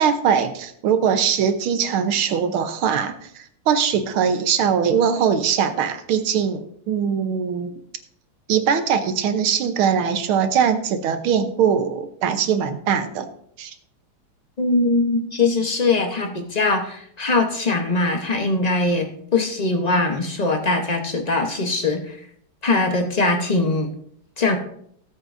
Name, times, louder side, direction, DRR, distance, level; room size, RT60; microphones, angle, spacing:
voice 1, 0.0-7.7 8.5-13.3 13.6-13.7, right 7 dB, 80° right, 9 dB, 1.8 m, -21 dB
voice 2, 14.6-22.2 22.6-23.9 24.4-24.6, left 3 dB, 40° left, 4 dB, 0.5 m, -21 dB
19.0 x 8.2 x 2.6 m, 0.67 s
omnidirectional pair, 2.3 m